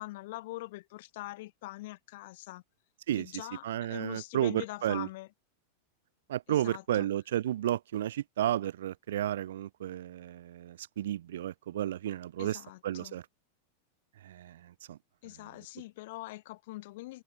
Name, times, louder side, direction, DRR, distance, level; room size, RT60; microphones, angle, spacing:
voice 1, 0.0-2.6 3.2-5.3 6.5-7.1 12.4-13.2 15.2-17.2, left 19 dB, 50° left, 1.9 m, -43 dB
voice 2, 3.1-5.1 6.3-13.2 14.2-15.0, right 12 dB, 60° right, 0.4 m, -32 dB
figure-of-eight pair, 90°, 0 cm